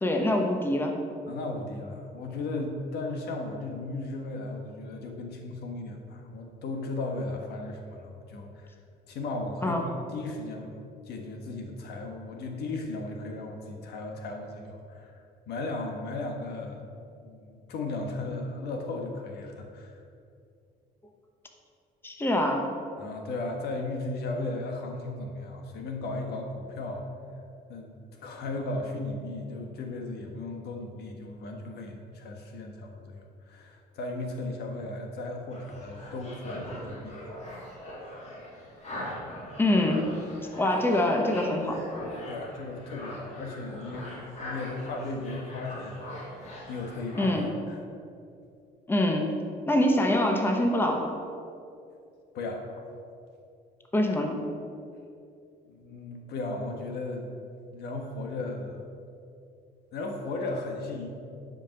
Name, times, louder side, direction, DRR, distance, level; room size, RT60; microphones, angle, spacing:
voice 1, 0.0-0.9 9.6-9.8 22.0-22.7 39.6-40.1 40.6-41.8 47.1-47.5 48.9-49.3 49.7-51.2 53.9-54.4, left 1 dB, 15° left, 2 dB, 1.1 m, -25 dB
voice 2, 1.3-8.8 9.1-10.8 11.0-16.8 17.2-20.0 23.0-27.1 27.7-37.4 42.2-46.0 46.3-47.3 47.7-47.8 52.3-52.9 55.7-57.3 57.7-58.8 59.9-61.1, left 2 dB, 75° left, 2 dB, 1.5 m, -36 dB
sound 1, 35.5-47.5, left 1 dB, 40° left, 2.5 m, -41 dB
11.0 x 5.3 x 5.9 m, 2.5 s
cardioid pair, 110°, 17 cm